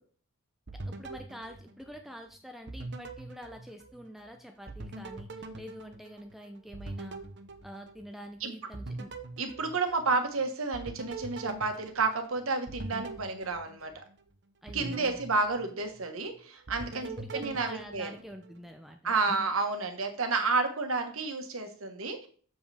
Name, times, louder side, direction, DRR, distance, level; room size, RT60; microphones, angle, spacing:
voice 1, 0.7-7.2 7.6-9.1 14.6-15.2 16.9-19.5, equal, ahead, 4 dB, 0.5 m, -46 dB
sound 1, 0.7-2.3 2.7-4.3 4.7-8.3 8.7-10.3 10.7-14.2 14.7-16.3 16.7-18.6, right 2 dB, 55° right, 0.9 m, -43 dB
voice 2, 9.4-14.0 14.7-18.1 19.0-22.3, right 3 dB, 75° right, 6 dB, 1.4 m, -31 dB
7.5 x 7.1 x 3.4 m, 0.43 s
head